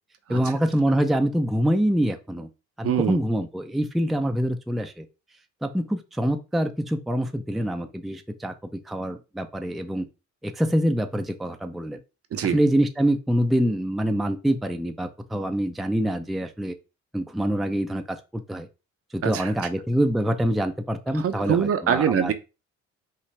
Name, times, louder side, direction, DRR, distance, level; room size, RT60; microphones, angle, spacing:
voice 1, 0.3-2.5 2.8-5.1 5.6-8.5 8.9-10.1 10.4-12.0 12.4-16.7 17.1-18.7 19.1-22.3, equal, ahead, 0.5 m, -25 dB
voice 2, 2.8-3.2 12.3-12.6 19.2-19.5 21.1-22.3, right 8 dB, 50° right, 0.7 m, -24 dB
5.6 x 2.5 x 3.2 m
cardioid pair, 90°, 30 cm